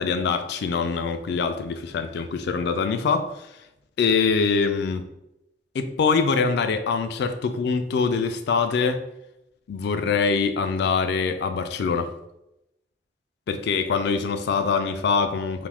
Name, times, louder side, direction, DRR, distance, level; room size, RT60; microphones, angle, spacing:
voice 1, 0.0-3.3 4.0-5.0 5.7-9.0 9.7-12.1 13.5-15.7, left 5 dB, 65° left, 8 dB, 0.3 m, -24 dB
2.6 x 2.4 x 3.4 m, 0.87 s
head